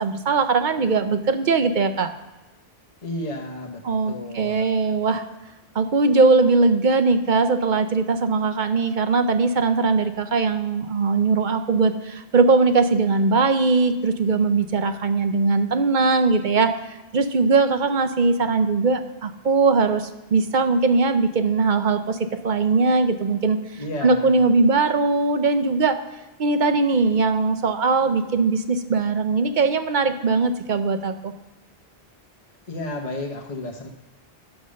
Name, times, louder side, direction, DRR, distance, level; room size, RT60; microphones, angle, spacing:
voice 1, 0.0-2.1 3.8-5.2 5.7-22.2 22.4-23.6 24.0-26.0 26.4-31.3, right 4 dB, 55° right, 9 dB, 0.8 m, -20 dB
voice 2, 3.0-4.7 23.8-24.4 32.7-33.9, left 1 dB, 40° left, -1 dB, 1.0 m, -32 dB
10.0 x 7.1 x 6.4 m, 1.0 s
omnidirectional pair, 1.1 m